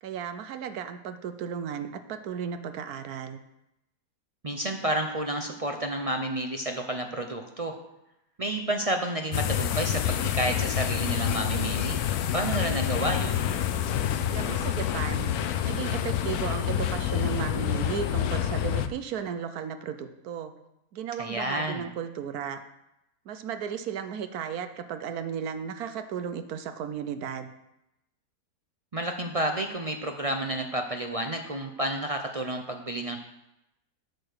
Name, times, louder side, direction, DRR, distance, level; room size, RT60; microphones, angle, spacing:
voice 1, 0.0-3.4 14.3-15.3 15.6-20.5 20.9-22.6 23.3-27.5, right 7 dB, 70° right, 9 dB, 1.3 m, -35 dB
voice 2, 4.4-7.7 8.4-12.0 12.3-13.4 21.2-21.8 28.9-33.2, right 1 dB, 45° right, 4 dB, 0.4 m, -30 dB
sound 1, 9.3-18.9, left 10 dB, 75° left, 1.1 m, -27 dB
8.5 x 6.7 x 6.6 m, 0.88 s
omnidirectional pair, 1.7 m